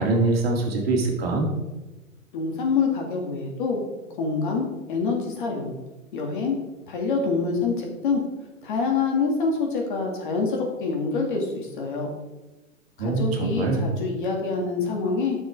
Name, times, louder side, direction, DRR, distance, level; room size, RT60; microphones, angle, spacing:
voice 1, 0.0-1.5 13.0-13.8, right 3 dB, 45° right, 1 dB, 2.3 m, -23 dB
voice 2, 2.3-3.8 4.2-5.7 6.1-6.6 6.9-8.2 8.6-12.1 13.0-15.4, left 4 dB, 35° left, 1 dB, 2.2 m, -26 dB
11.5 x 7.0 x 4.7 m, 1.1 s
hypercardioid pair, 175°, 42 cm